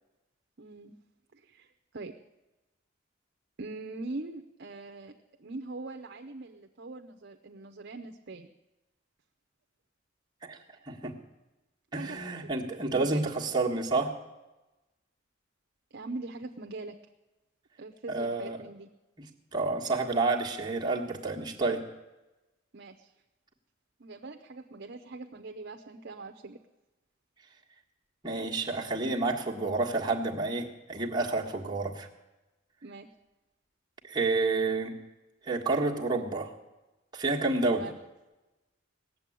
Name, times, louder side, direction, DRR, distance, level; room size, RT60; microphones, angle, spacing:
voice 1, 0.6-0.9 1.3-2.1 3.6-5.1 5.4-8.5 12.0-13.3 15.9-17.0 17.8-18.9 22.7-23.1 24.0-26.6 32.8-33.1 37.7-38.0, right 3 dB, 55° right, 5 dB, 0.7 m, -42 dB
voice 2, 11.9-14.1 18.1-18.6 19.2-19.3 19.5-21.8 28.2-32.1 34.0-35.0 35.4-36.5 37.1-37.9, right 3 dB, 20° right, -1 dB, 1.6 m, -29 dB
18.0 x 7.6 x 9.9 m, 1.1 s
head